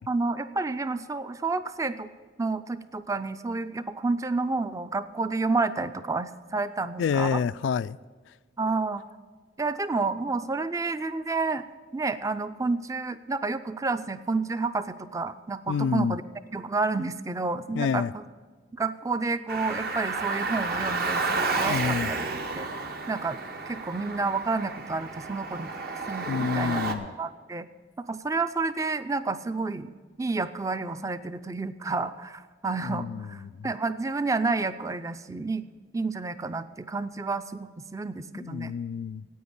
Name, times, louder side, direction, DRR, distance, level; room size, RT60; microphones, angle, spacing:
voice 1, 0.1-2.1 2.4-7.4 8.6-9.1 9.6-11.6 11.9-16.2 16.5-18.2 18.7-22.2 22.5-22.7 23.1-23.4 23.7-25.7 26.1-26.8 27.2-27.7 28.1-29.9 30.2-35.6 35.9-38.7, right 3 dB, 20° right, 0.4 m, -30 dB
voice 2, 7.0-8.0 15.7-16.2 17.7-18.1 21.6-22.1 26.3-27.1 32.8-33.7 38.3-39.3, left 6 dB, 85° left, 0.3 m, -28 dB
Car, 19.5-26.9, right 3 dB, 55° right, 1.0 m, -31 dB
9.4 x 8.8 x 8.6 m
head